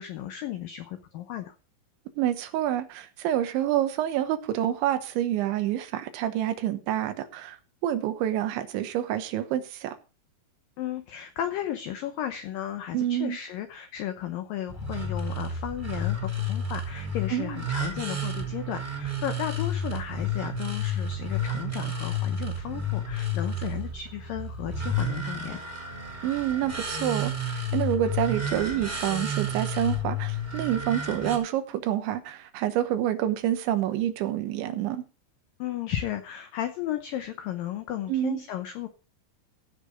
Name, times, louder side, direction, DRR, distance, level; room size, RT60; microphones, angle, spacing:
voice 1, 0.0-1.5 10.8-25.6 35.6-38.9, left 11 dB, 75° left, 2.1 m, -34 dB
voice 2, 2.2-7.6 7.8-10.0 12.9-13.4 17.3-17.6 26.2-35.0 38.1-38.4, right 11 dB, 85° right, 3.5 m, -28 dB
sound 1, 14.7-31.4, left 2 dB, 15° right, 2.4 m, -31 dB
15.5 x 6.8 x 5.0 m
omnidirectional pair, 5.2 m